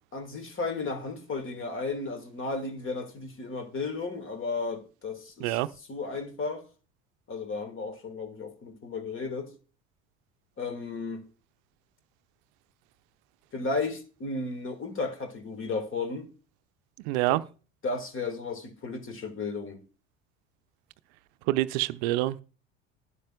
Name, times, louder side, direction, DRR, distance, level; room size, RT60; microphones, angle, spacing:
voice 1, 0.1-5.6 5.9-6.6 7.3-9.5 10.6-11.3 13.5-16.3 17.3-17.4 17.8-19.8, left 3 dB, 30° left, 1.4 m, -34 dB
voice 2, 17.1-17.4 21.5-22.4, right 17 dB, 60° right, 0.6 m, -26 dB
11.5 x 10.0 x 2.2 m
hypercardioid pair, 70°, 39 cm